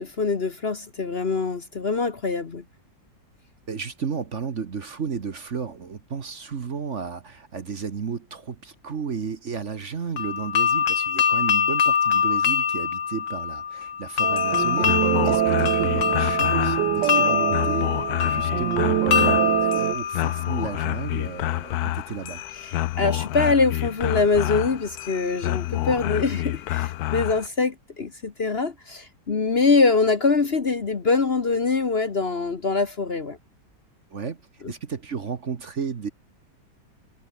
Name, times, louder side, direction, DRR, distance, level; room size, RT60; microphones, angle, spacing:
voice 1, 0.0-2.6 22.6-33.4 34.6-34.7, left 4 dB, 40° left, 1.3 m, -24 dB
voice 2, 3.7-22.4 34.1-34.4 34.7-36.1, right 6 dB, 45° right, 1.5 m, -33 dB
sound 1, 10.2-21.0, left 7 dB, 85° left, 2.4 m, -24 dB
sound 2, 14.2-27.5, left 15 dB, 70° left, 1.0 m, -29 dB
sound 3, 14.2-19.9, right 14 dB, 90° right, 1.4 m, -25 dB
omnidirectional pair, 1.9 m